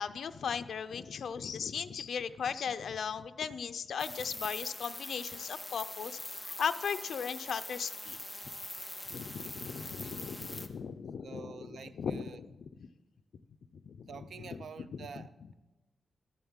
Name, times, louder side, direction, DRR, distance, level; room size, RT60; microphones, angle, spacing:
voice 1, 0.0-8.2 9.1-12.9 13.8-14.1 14.8-15.1, left 7 dB, 75° left, 11 dB, 0.5 m, -37 dB
sound 1, 4.0-10.7, left 1 dB, 5° left, 0.7 m, -43 dB
voice 2, 9.8-10.1 11.2-12.4 14.1-15.5, right 6 dB, 70° right, 13 dB, 0.5 m, -48 dB
13.0 x 7.1 x 7.2 m, 1.1 s
wide cardioid pair, 170°, 0 cm